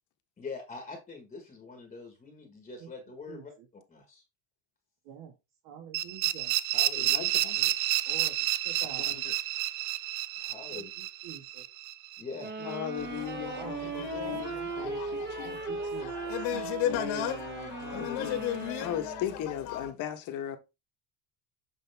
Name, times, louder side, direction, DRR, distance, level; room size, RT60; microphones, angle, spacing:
voice 1, 0.4-3.5 3.9-4.2 6.7-7.3 10.4-10.9 12.2-12.5, left 4 dB, 15° left, 1.4 m, -43 dB
voice 2, 3.3-3.7 5.0-5.3 5.6-6.5 8.1-8.3 8.6-9.2 10.7-11.9 13.5-16.7 17.9-18.1, right 8 dB, 60° right, 1.8 m, -48 dB
sound 1, 5.9-12.7, right 14 dB, 45° right, 0.5 m, -30 dB
voice 3, 7.0-7.7 9.0-9.3 12.6-15.8 16.9-18.4 18.8-20.6, left 10 dB, 45° left, 1.3 m, -38 dB
sound 2, 12.4-19.5, right 4 dB, 25° right, 1.2 m, -38 dB
sound 3, 13.0-19.9, left 11 dB, 65° left, 1.6 m, -36 dB
8.0 x 5.1 x 3.5 m
cardioid pair, 165°, 43 cm